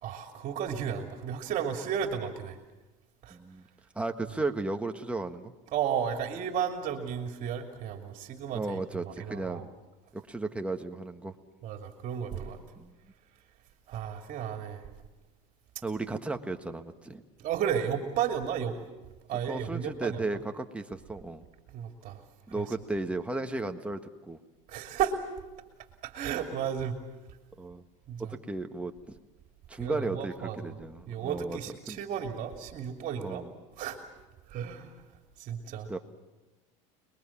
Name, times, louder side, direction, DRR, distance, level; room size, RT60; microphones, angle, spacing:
voice 1, 0.0-2.6 3.2-3.4 5.7-9.6 11.6-12.6 13.9-14.8 17.4-18.8 19.3-20.2 21.7-22.2 22.5-22.6 24.7-25.2 26.0-26.9 28.1-28.3 29.7-30.8 31.1-33.5 33.8-34.0 34.5-34.9 35.4-36.0, right 8 dB, 45° right, 4 dB, 2.8 m, -33 dB
voice 2, 3.3-3.6 3.9-5.5 8.5-9.7 10.1-11.3 12.8-12.9 15.8-17.2 19.5-21.4 22.5-24.4 27.6-27.8 28.2-29.2 29.7-31.6 31.9-32.0 33.2-33.5 35.9-36.0, right 2 dB, 5° right, 5 dB, 1.6 m, -35 dB
29.0 x 21.5 x 7.3 m, 1.1 s
supercardioid pair, 120°, 17 cm